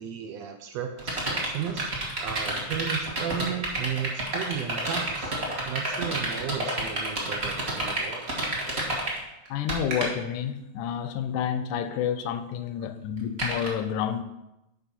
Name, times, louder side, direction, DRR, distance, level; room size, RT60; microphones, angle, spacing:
voice 1, 0.0-1.9 2.2-8.2, right 8 dB, 75° right, 1.6 m, -34 dB
sound 1, 1.0-9.2 9.5-10.1 13.4-13.7, right 1 dB, 35° right, 1.1 m, -29 dB
voice 2, 9.5-14.2, left 8 dB, 90° left, 2.1 m, -29 dB
9.6 x 3.5 x 5.9 m
omnidirectional pair, 3.4 m